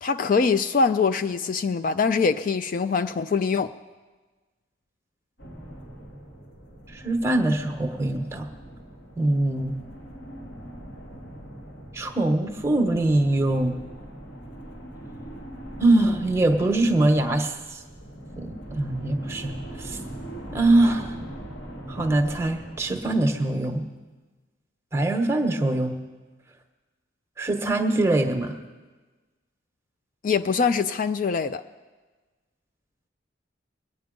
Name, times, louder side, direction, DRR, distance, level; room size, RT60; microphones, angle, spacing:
voice 1, 0.0-3.7 30.2-31.6, left 5 dB, 45° left, 0.3 m, -23 dB
sound 1, 5.4-23.8, right 1 dB, 75° left, 2.8 m, -41 dB
voice 2, 6.9-8.5 9.2-9.8 11.9-13.8 15.8-17.8 18.4-20.0 20.5-21.1 21.9-23.8 24.9-26.0 27.4-28.6, right 2 dB, 15° right, 1.1 m, -23 dB
22.5 x 9.3 x 5.2 m
head